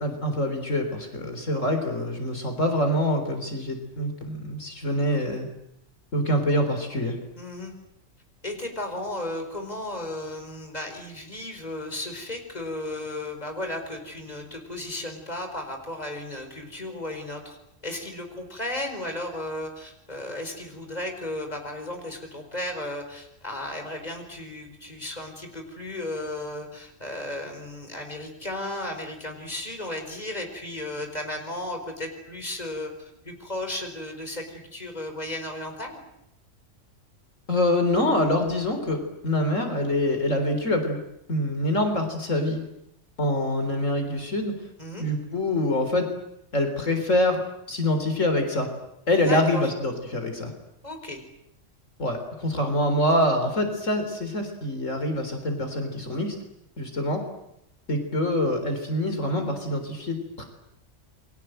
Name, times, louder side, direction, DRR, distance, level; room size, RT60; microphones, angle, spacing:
voice 1, 0.0-5.5 6.1-7.2 37.5-41.0 41.3-42.6 43.2-44.5 45.0-46.1 46.5-47.4 47.7-48.7 49.1-50.5 52.0-56.4 56.8-57.2 57.9-60.4, left 1 dB, 80° left, 6 dB, 4.1 m, -25 dB
voice 2, 7.4-7.7 8.4-17.6 17.8-32.9 33.2-36.0 44.8-45.1 49.2-49.7 50.8-51.2, left 1 dB, 30° left, 5 dB, 4.7 m, -34 dB
29.0 x 23.0 x 7.8 m, 0.81 s
omnidirectional pair, 1.3 m